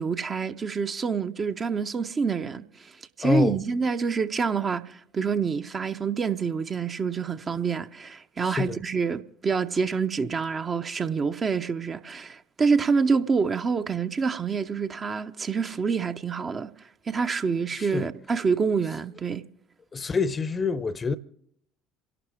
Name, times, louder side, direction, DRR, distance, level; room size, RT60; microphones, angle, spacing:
voice 1, 0.0-2.9 3.2-16.7 17.1-19.4, right 5 dB, 30° right, 0.6 m, -27 dB
voice 2, 3.2-3.6 8.4-8.8 17.7-18.1 19.9-21.2, left 5 dB, 25° left, 0.7 m, -26 dB
28.0 x 12.0 x 3.5 m
figure-of-eight pair, 60°, 0 cm